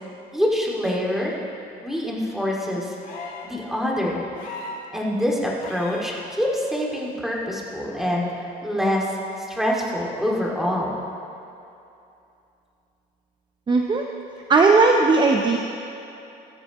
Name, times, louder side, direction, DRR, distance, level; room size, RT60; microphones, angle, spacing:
voice 1, 0.3-1.3 1.8-2.9 3.4-4.2 4.9-10.9, equal, ahead, -3 dB, 2.2 m, -25 dB
sound 1, 3.0-3.5 4.3-4.8 5.6-6.1 7.5-7.6, left 3 dB, 55° left, 2.4 m, -37 dB
voice 2, 13.7-14.1 14.5-15.6, right 3 dB, 25° right, 2 dB, 0.7 m, -17 dB
14.0 x 13.5 x 3.0 m, 2.7 s
cardioid pair, 110°, 17 cm